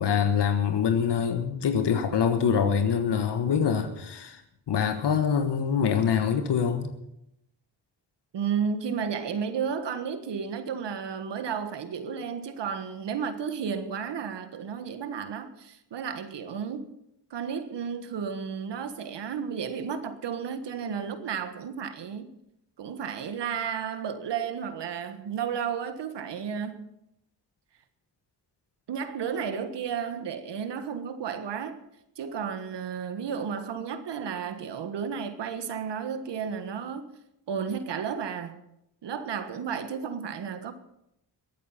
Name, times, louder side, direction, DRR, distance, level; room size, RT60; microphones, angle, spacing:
voice 1, 0.0-4.4 4.7-6.9, left 7 dB, 75° left, 1.4 m, -25 dB
voice 2, 8.3-16.9 17.3-22.3 22.8-26.9 28.9-31.8 32.2-37.1 37.5-38.6 39.0-40.7, right 7 dB, 80° right, 1.5 m, -33 dB
21.5 x 8.7 x 5.7 m
cardioid pair, 90°, 41 cm